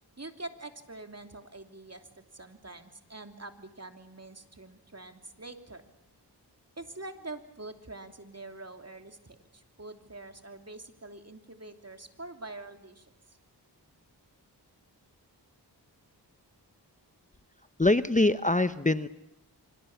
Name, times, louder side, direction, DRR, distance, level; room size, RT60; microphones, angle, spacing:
voice 1, 0.2-5.8 6.8-13.4, right 2 dB, 40° right, 7 dB, 3.1 m, -45 dB
voice 2, 17.8-19.1, left 2 dB, 20° left, 13 dB, 0.9 m, -24 dB
26.5 x 25.5 x 7.2 m, 0.85 s
cardioid pair, 45°, 41 cm